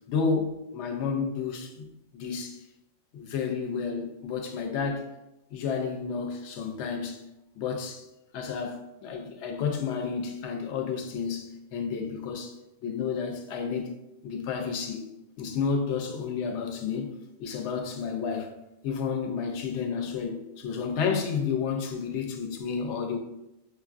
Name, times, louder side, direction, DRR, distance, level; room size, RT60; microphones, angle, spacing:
voice 1, 0.1-1.8 2.1-2.6 3.1-5.1 5.5-7.2 7.6-8.1 8.3-12.6 12.8-13.9 14.2-15.0 15.4-17.1 17.4-18.5 18.8-23.2, left 5 dB, 70° left, 0.8 m, -31 dB
4.9 x 2.4 x 2.4 m
omnidirectional pair, 1.3 m